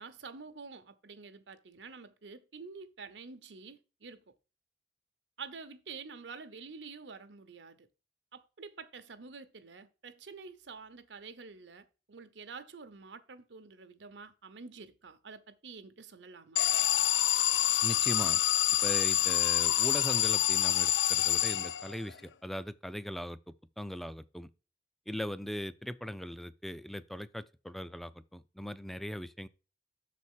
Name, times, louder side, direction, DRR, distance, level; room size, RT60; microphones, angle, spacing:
voice 1, 0.0-4.2 5.4-7.9 8.3-16.6, right 4 dB, 85° right, 0.8 m, -48 dB
Alarm, 16.6-22.1, left 12 dB, 80° left, 0.3 m, -27 dB
voice 2, 17.8-18.4 18.8-23.4 23.8-24.5 25.1-29.5, equal, ahead, 0.3 m, -39 dB
6.4 x 4.2 x 6.1 m
head